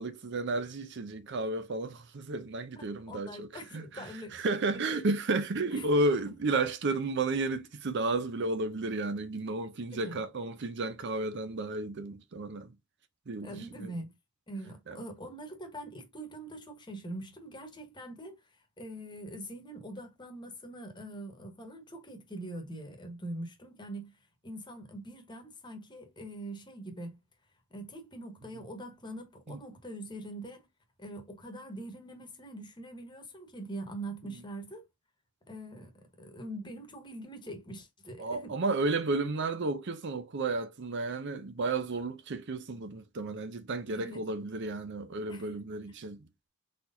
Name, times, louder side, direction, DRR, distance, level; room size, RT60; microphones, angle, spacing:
voice 1, 0.0-3.5 3.7-12.7 13.3-13.5 13.8-13.9 14.9-15.0 29.5-29.6 38.2-46.3, right 2 dB, 55° right, 0.6 m, -32 dB
voice 2, 2.7-4.4 4.7-5.0 5.7-5.9 9.9-10.2 13.4-14.1 14.5-27.2 27.7-30.7 31.0-34.9 35.5-38.6 43.9-44.3 45.3-45.6, right 1 dB, 20° left, 1.2 m, -43 dB
4.3 x 4.2 x 2.5 m
head